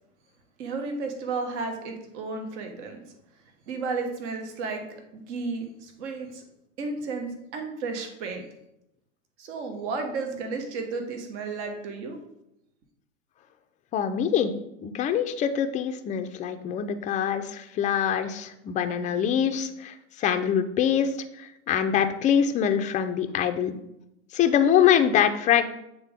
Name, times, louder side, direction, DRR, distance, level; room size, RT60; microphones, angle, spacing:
voice 1, 0.6-3.0 3.7-6.4 6.8-8.4 9.4-12.2, right 4 dB, 60° right, 5 dB, 1.3 m, -33 dB
voice 2, 13.9-14.5 14.8-21.1 21.4-23.7 24.3-25.7, left 9 dB, 20° left, 7 dB, 0.4 m, -24 dB
7.4 x 3.7 x 3.5 m, 0.83 s
hypercardioid pair, 100°, 38 cm